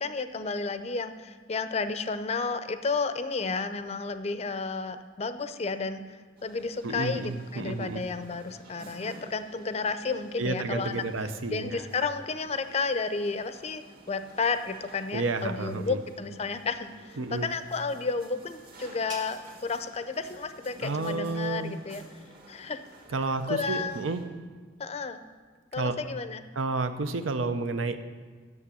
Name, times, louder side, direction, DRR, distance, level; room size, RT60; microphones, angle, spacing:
voice 1, 0.0-11.0 11.5-22.0 22.5-22.8 23.5-24.0 24.8-25.2 25.7-26.4, left 4 dB, 35° left, 10 dB, 0.5 m, -32 dB
sound 1, 6.4-24.2, right 2 dB, 50° right, 1.8 m, -53 dB
voice 2, 6.8-8.0 10.4-11.8 15.1-16.0 17.2-17.5 20.8-21.8 23.1-24.2 25.8-26.0 26.6-28.0, right 3 dB, 85° right, 9 dB, 0.7 m, -30 dB
sound 2, 17.8-23.2, right 1 dB, 20° right, 1.0 m, -52 dB
8.6 x 6.7 x 8.2 m, 1.5 s
head